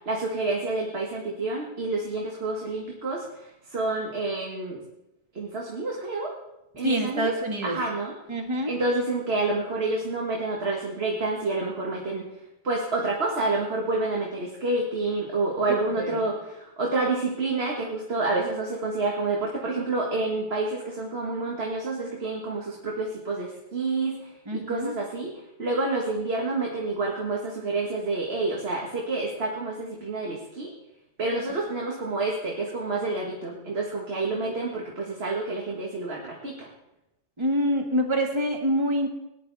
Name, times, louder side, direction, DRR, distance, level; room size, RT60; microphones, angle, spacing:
voice 1, 0.0-4.8 5.3-6.3 6.8-7.3 7.6-8.1 8.7-12.2 12.6-25.3 25.6-30.7 31.2-36.7, right 3 dB, 60° right, -2 dB, 1.9 m, -28 dB
voice 2, 6.8-7.8 8.3-8.7 16.0-16.2 24.5-24.9 34.3-34.5 37.4-39.1, equal, 25° right, 2 dB, 1.7 m, -26 dB
18.5 x 10.5 x 4.1 m, 0.89 s
omnidirectional pair, 1.2 m